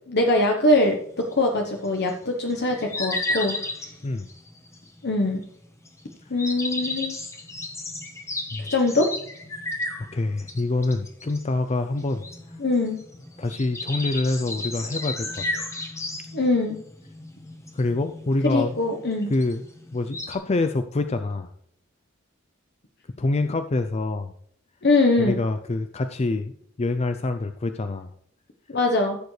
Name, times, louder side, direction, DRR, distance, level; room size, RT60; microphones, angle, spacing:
voice 1, 0.1-3.6 5.0-5.4 6.3-7.1 8.7-9.1 12.6-13.0 16.3-16.8 18.4-19.3 24.8-25.4 28.7-29.2, left 2 dB, 55° left, 2 dB, 1.0 m, -22 dB
sound 1, 0.8-20.3, left 2 dB, 15° left, 1.2 m, -34 dB
voice 2, 10.0-12.6 13.4-15.7 17.7-18.8 19.3-19.6 19.9-21.5 23.2-24.3 25.2-26.5 26.8-28.1, left 2 dB, 30° left, 9 dB, 0.5 m, -26 dB
15.0 x 6.9 x 3.3 m, 0.67 s
head